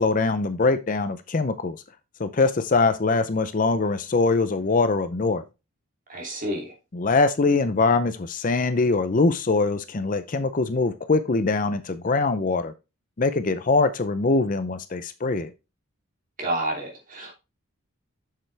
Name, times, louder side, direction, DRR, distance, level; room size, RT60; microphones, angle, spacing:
voice 1, 0.0-1.8 2.2-5.4 6.9-12.7 13.2-15.5, left 3 dB, 40° left, 11 dB, 0.5 m, -23 dB
voice 2, 6.1-6.7 16.4-17.3, right 1 dB, 40° right, -1 dB, 2.9 m, -29 dB
7.7 x 6.7 x 3.3 m, 0.27 s
head